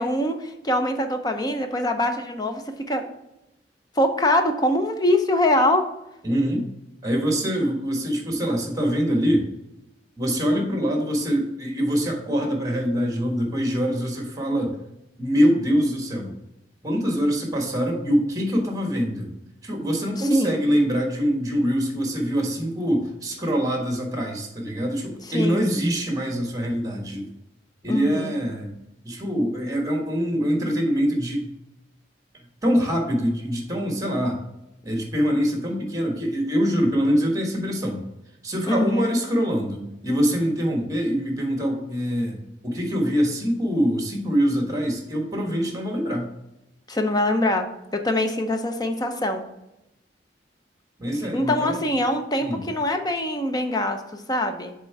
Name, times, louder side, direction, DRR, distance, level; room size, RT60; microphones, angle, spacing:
voice 1, 0.0-3.0 4.0-5.8 20.2-20.6 25.3-25.6 27.9-28.3 38.7-39.1 46.9-49.4 51.3-54.7, left 1 dB, 20° left, 6 dB, 0.6 m, -23 dB
voice 2, 6.2-6.6 7.0-9.5 10.2-14.8 15.2-16.3 16.8-19.3 19.6-27.3 27.8-28.7 29.0-31.5 32.6-34.4 34.8-38.0 38.4-46.3 51.0-51.8 52.4-52.6, equal, 20° right, 2 dB, 1.4 m, -24 dB
7.4 x 3.7 x 4.6 m, 0.89 s
head